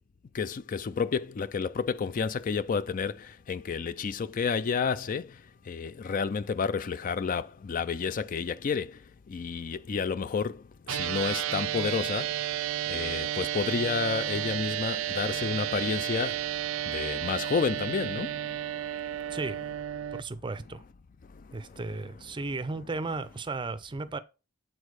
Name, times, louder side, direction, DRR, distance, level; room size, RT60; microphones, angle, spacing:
voice 1, 0.3-19.4 21.2-21.8, left 5 dB, 40° left, 0.4 m, -31 dB
sound 1, 10.9-20.2, right 12 dB, 75° right, 0.4 m, -32 dB
voice 2, 20.1-20.8 21.5-24.2, right 3 dB, 25° right, 0.5 m, -35 dB
8.4 x 4.3 x 4.7 m
head